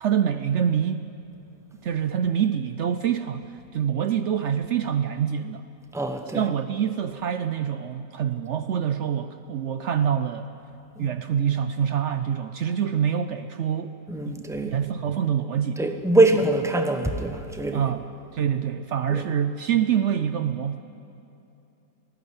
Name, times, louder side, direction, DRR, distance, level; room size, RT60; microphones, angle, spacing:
voice 1, 0.0-1.0 1.8-5.6 6.3-10.5 11.0-13.9 14.3-15.8 17.7-18.1 18.3-20.8, right 8 dB, 90° right, 10 dB, 0.6 m, -26 dB
voice 2, 5.9-6.4 11.0-11.1 14.1-14.8 15.8-17.9 19.1-19.2, right 2 dB, ahead, 6 dB, 0.9 m, -23 dB
19.0 x 15.5 x 9.6 m, 2.9 s
omnidirectional pair, 2.0 m